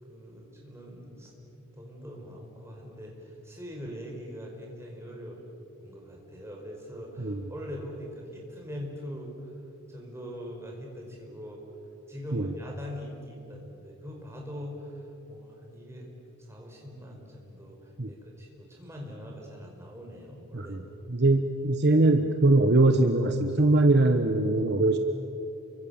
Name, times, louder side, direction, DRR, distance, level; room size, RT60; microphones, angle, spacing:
voice 1, 0.0-5.4 5.8-9.3 9.9-11.6 12.1-16.1 16.4-20.7, equal, 10° right, -1 dB, 5.1 m, -42 dB
voice 2, 21.1-25.0, right 2 dB, 50° right, 7 dB, 1.1 m, -22 dB
29.5 x 24.0 x 7.2 m, 2.9 s
head